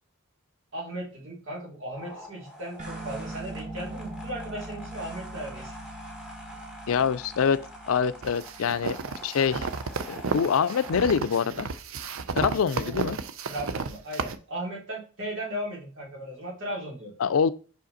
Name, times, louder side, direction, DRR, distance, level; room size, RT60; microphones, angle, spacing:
voice 1, 0.7-5.8 6.5-6.6 12.5-12.9 13.5-17.1, right 1 dB, 60° right, 3.4 m, -37 dB
sound 1, 1.9-11.0, equal, 5° right, 1.7 m, -45 dB
sound 2, 2.8-9.6, right 1 dB, 35° right, 1.2 m, -42 dB
voice 2, 6.9-9.0 9.2-9.7 10.1-11.7 12.3-13.2 17.2-17.5, left 6 dB, 80° left, 0.4 m, -25 dB
sound 3, 8.2-14.3, right 4 dB, 80° right, 0.6 m, -33 dB
5.7 x 5.1 x 4.1 m
head